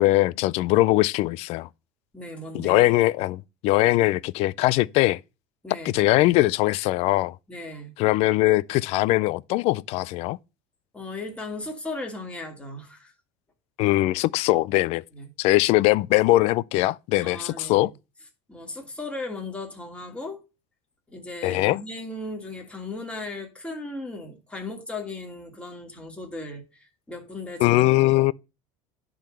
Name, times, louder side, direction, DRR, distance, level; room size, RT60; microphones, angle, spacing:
voice 1, 0.0-1.7 2.5-5.2 5.8-7.4 8.0-10.4 13.8-15.0 15.4-17.9 21.4-21.8 27.6-28.3, left 18 dB, 60° left, 0.4 m, -21 dB
voice 2, 2.1-2.9 5.6-6.0 7.5-7.9 10.9-13.1 15.1-15.3 17.2-17.9 18.5-20.4 21.1-28.3, left 2 dB, 10° left, 2.9 m, -37 dB
10.5 x 4.0 x 6.7 m
supercardioid pair, 120°, 12 cm